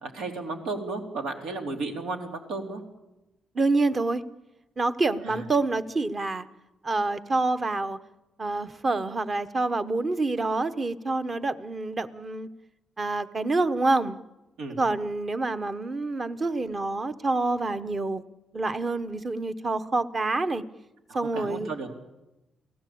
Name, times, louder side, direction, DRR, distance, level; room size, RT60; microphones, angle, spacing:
voice 1, 0.0-2.8 5.3-5.4 14.6-14.8 21.1-21.9, right 3 dB, 85° right, 3 dB, 3.7 m, -34 dB
voice 2, 3.5-4.2 4.8-6.5 6.8-8.0 8.4-12.5 13.0-14.2 14.8-18.2 18.5-20.6 21.1-21.7, right 3 dB, 25° right, 11 dB, 1.0 m, -27 dB
29.0 x 17.5 x 8.6 m, 1.0 s
cardioid pair, 140°, 0 cm